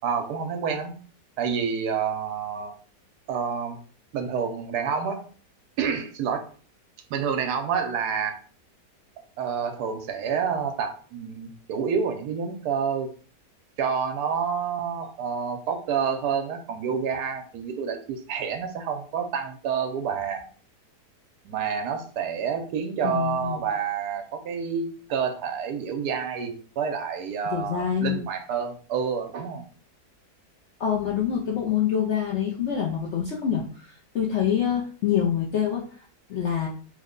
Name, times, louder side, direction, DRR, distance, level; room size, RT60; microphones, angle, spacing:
voice 1, 0.0-0.9 1.4-2.7 3.3-3.8 4.1-5.2 5.8-6.5 7.1-8.4 9.4-13.1 13.8-20.4 21.4-29.6, right 6 dB, 75° right, 5 dB, 1.1 m, -28 dB
voice 2, 23.0-23.6 27.5-28.3 30.8-35.8 36.3-36.7, left 8 dB, 70° left, -3 dB, 0.7 m, -26 dB
3.2 x 2.1 x 3.6 m, 0.41 s
omnidirectional pair, 1.8 m